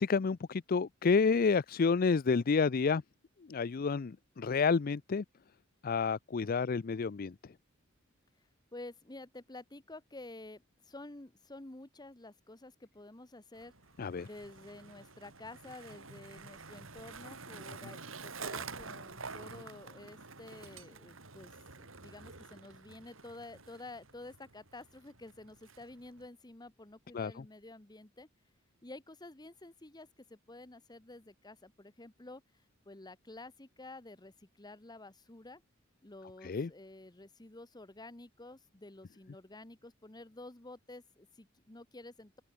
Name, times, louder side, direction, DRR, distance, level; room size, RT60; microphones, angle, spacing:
voice 1, 0.0-3.0 3.5-5.2 5.8-7.3 14.0-14.3 27.1-27.4 36.4-36.7, left 5 dB, 45° left, 0.5 m, -29 dB
voice 2, 8.7-13.7 14.2-28.3 28.8-32.4 32.8-35.6 36.0-42.4, left 2 dB, 20° left, 1.3 m, -50 dB
Skateboard, 13.5-26.3, right 4 dB, 80° right, 5.4 m, -48 dB
open air
head